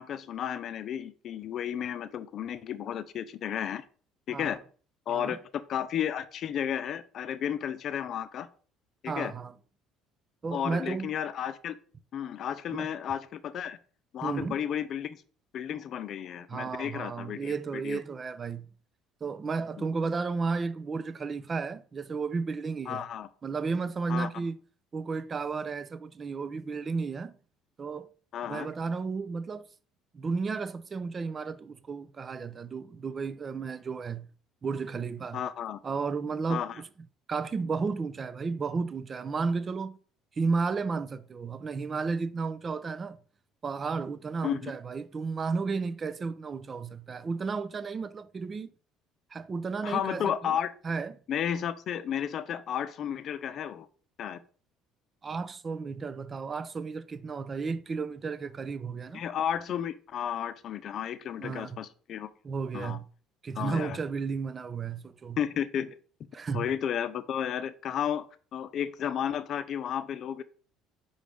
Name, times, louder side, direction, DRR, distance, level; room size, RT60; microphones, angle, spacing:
voice 1, 0.0-3.8 4.3-4.6 5.1-8.5 9.0-9.3 10.5-11.8 12.1-13.8 14.1-15.2 15.5-18.0 19.8-19.9 22.9-23.3 24.1-24.3 28.3-28.7 35.3-35.8 36.5-36.8 44.4-44.7 49.8-50.7 51.3-53.9 54.2-54.4 59.1-62.3 62.7-63.0 63.6-64.0 65.4-65.9 66.5-70.4, left 9 dB, 55° left, 0.6 m, -33 dB
voice 2, 5.1-5.4 9.1-9.5 10.4-11.1 12.7-12.9 14.2-14.6 16.5-18.7 19.2-23.0 23.4-24.6 24.9-27.4 27.8-28.1 28.4-29.6 30.1-34.3 34.6-35.4 35.8-36.9 37.3-40.0 40.4-43.2 43.6-48.7 49.3-50.6 50.8-51.2 55.2-59.2 61.4-61.8 62.4-63.1 63.4-65.4 66.3-66.7, right 4 dB, 35° right, 0.5 m, -33 dB
5.5 x 4.9 x 3.4 m
supercardioid pair, 75°, 0 cm